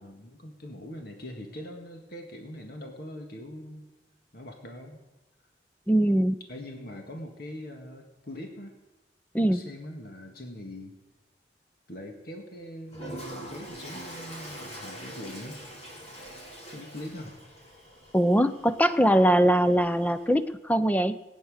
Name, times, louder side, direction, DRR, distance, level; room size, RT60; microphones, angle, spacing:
voice 1, 0.0-3.9 4.3-5.0 6.5-8.7 9.5-11.0 11.9-15.6 16.7-17.4, left 1 dB, 60° left, 3 dB, 1.9 m, -42 dB
voice 2, 5.9-6.4 9.3-9.6 18.1-21.2, equal, 10° left, 12 dB, 0.6 m, -22 dB
Toilet flush, 12.9-20.4, equal, 35° left, 3.5 m, -44 dB
19.0 x 9.4 x 6.5 m, 1.0 s
head